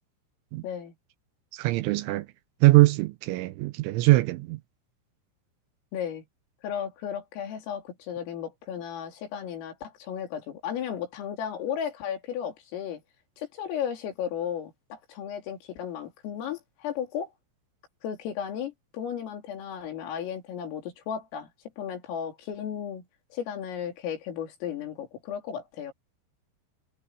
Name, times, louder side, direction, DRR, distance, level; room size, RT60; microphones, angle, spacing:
voice 1, 0.6-0.9 5.9-6.3 6.6-13.0 13.4-17.3 18.0-21.5 21.8-23.1 23.3-25.9, left 8 dB, 80° left, 5.9 m, -34 dB
voice 2, 1.5-2.3 2.6-4.6, right 19 dB, 85° right, 3.0 m, -22 dB
omnidirectional pair, 5.8 m